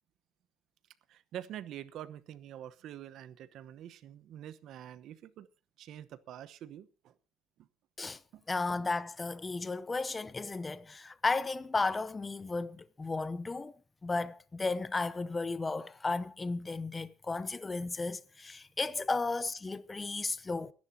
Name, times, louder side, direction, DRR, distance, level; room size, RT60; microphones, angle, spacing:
voice 1, 1.1-5.5 5.8-7.2 7.6-7.7 8.3-8.4, right 11 dB, 65° right, 1.0 m, -46 dB
voice 2, 8.5-13.7 14.0-20.7, left 3 dB, 20° left, 0.7 m, -34 dB
29.5 x 10.5 x 2.8 m
cardioid pair, 105°, 0 cm